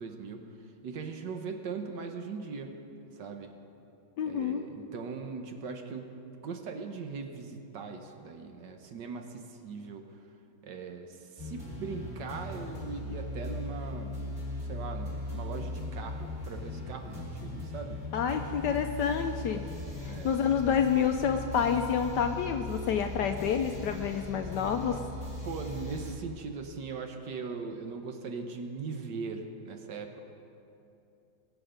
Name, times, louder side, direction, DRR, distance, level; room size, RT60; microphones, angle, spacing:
voice 1, 0.0-2.8 3.1-3.5 4.3-10.2 10.6-14.1 14.6-18.0 20.0-20.3 25.4-30.2, right 5 dB, 65° right, 5 dB, 1.4 m, -40 dB
voice 2, 4.2-4.7 18.1-19.6 20.0-25.0, left 7 dB, 75° left, 6 dB, 1.0 m, -28 dB
sound 1, 11.4-26.1, left 2 dB, 30° right, 2.7 m, -39 dB
21.5 x 7.1 x 5.1 m, 2.8 s
omnidirectional pair, 2.2 m